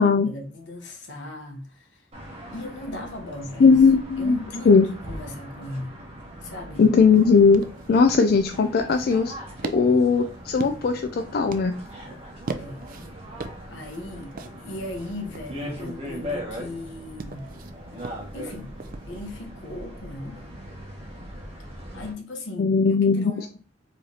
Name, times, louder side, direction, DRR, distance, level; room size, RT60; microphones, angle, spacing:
voice 1, 0.0-2.0 2.5-3.8 4.2-6.0 6.4-6.9 12.6-12.8 13.7-17.5 18.3-18.8 19.1-20.4 21.9-23.6, left 2 dB, 75° left, 0.9 m, -37 dB
sound 1, 2.1-22.1, equal, 30° right, 1.5 m, -40 dB
voice 2, 3.6-4.4 4.7-4.9 6.8-9.3 9.7-11.8 22.6-23.3, left 5 dB, 55° left, 0.3 m, -18 dB
sound 2, 7.1-19.4, right 4 dB, 50° right, 0.4 m, -41 dB
4.7 x 3.1 x 2.7 m
head